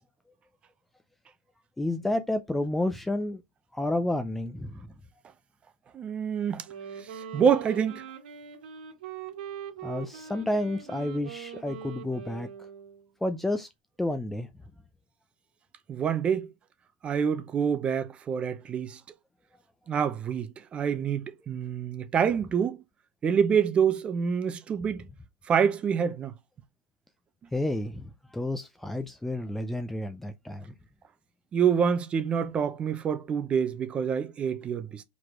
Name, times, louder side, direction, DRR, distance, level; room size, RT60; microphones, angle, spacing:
voice 1, 1.8-3.4 3.7-4.8 9.8-12.5 13.2-13.7 14.0-14.5 27.5-30.7, left 1 dB, 5° left, 0.5 m, -30 dB
voice 2, 5.9-6.6 7.0-8.0 15.9-16.5 17.0-19.0 19.9-22.8 23.2-25.1 25.5-26.3 31.5-35.0, right 7 dB, 20° right, 0.8 m, -27 dB
Wind instrument woodwind instrument, 6.5-13.1, right 8 dB, 70° right, 2.3 m, -42 dB
4.9 x 4.1 x 4.7 m
supercardioid pair, 140°, 5 cm